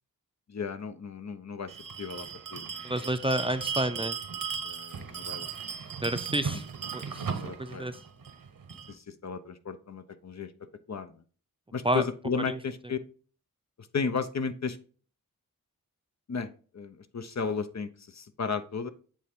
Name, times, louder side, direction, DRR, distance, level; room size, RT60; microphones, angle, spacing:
voice 1, 0.5-1.7 2.0-3.2 4.6-5.5 7.3-7.9 8.9-10.5 10.9-11.1 11.7-13.0 13.9-14.8 16.3-16.5 16.7-18.9, left 5 dB, 50° left, 10 dB, 0.7 m, -34 dB
Bell, 1.7-8.9, right 6 dB, 75° right, 1.0 m, -37 dB
voice 2, 2.8-4.2 6.0-6.6 6.9-7.0 7.6-7.9 11.8-12.0, right 1 dB, 15° right, 10 dB, 0.6 m, -29 dB
8.4 x 3.3 x 3.6 m, 0.41 s
cardioid pair, 40°, 34 cm